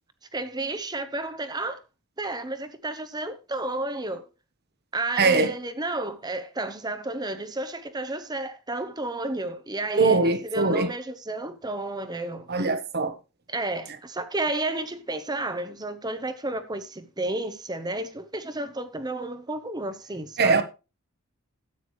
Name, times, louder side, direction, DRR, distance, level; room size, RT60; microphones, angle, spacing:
voice 1, 0.3-1.8 2.2-4.3 4.9-12.7 13.5-20.6, right 2 dB, 20° right, 1.0 m, -32 dB
voice 2, 5.2-5.5 10.0-10.9 12.5-13.1 20.4-20.6, right 3 dB, 50° right, 1.3 m, -21 dB
13.0 x 9.1 x 3.2 m
head